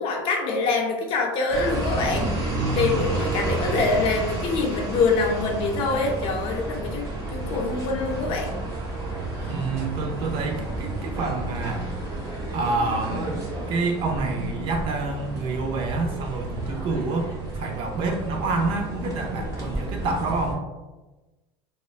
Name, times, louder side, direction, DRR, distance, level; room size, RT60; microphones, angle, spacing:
voice 1, 0.0-2.3 2.7-8.6, left 3 dB, 45° left, 1 dB, 0.6 m, -25 dB
sound 1, 1.5-20.5, right 2 dB, 25° right, 0.9 m, -31 dB
voice 2, 9.5-11.9 12.5-13.4 13.7-20.7, right 3 dB, 45° right, 4 dB, 0.4 m, -28 dB
3.1 x 2.0 x 2.4 m, 1.1 s
supercardioid pair, 130°, 12 cm